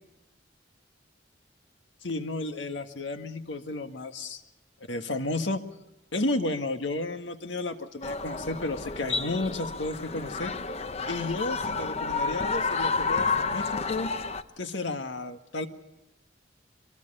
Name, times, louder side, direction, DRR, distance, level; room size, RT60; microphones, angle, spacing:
voice 1, 2.0-4.4 4.9-5.6 6.1-10.5 11.1-14.1 14.6-15.7, left 2 dB, 90° left, 7 dB, 1.7 m, -32 dB
sound 1, 8.0-14.4, left 4 dB, 35° left, 0.8 m, -30 dB
23.5 x 23.0 x 5.5 m, 0.96 s
head